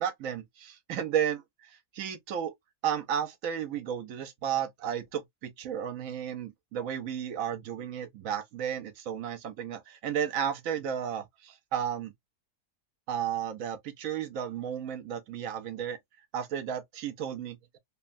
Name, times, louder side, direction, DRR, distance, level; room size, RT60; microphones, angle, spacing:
voice 1, 0.0-2.5 2.8-12.1 13.1-16.0 16.3-17.8, right 9 dB, 65° right, 1.0 m, -33 dB
3.0 x 2.2 x 2.5 m
omnidirectional pair, 1.7 m